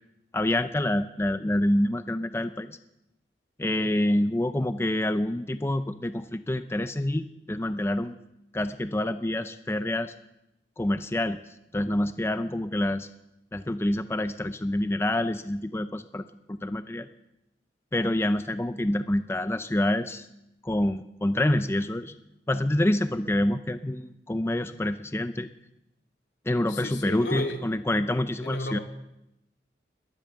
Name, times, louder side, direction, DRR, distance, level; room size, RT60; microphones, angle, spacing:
voice 1, 0.3-2.8 3.6-8.2 8.5-10.1 10.8-11.4 11.7-13.1 13.5-16.2 16.5-17.1 17.9-20.3 20.6-22.1 22.5-25.5 26.5-28.8, left 1 dB, 15° left, 10 dB, 0.5 m, -27 dB
voice 2, 26.7-27.6 28.4-28.8, left 1 dB, 80° left, 3 dB, 2.3 m, -33 dB
21.0 x 8.9 x 7.7 m, 0.86 s
head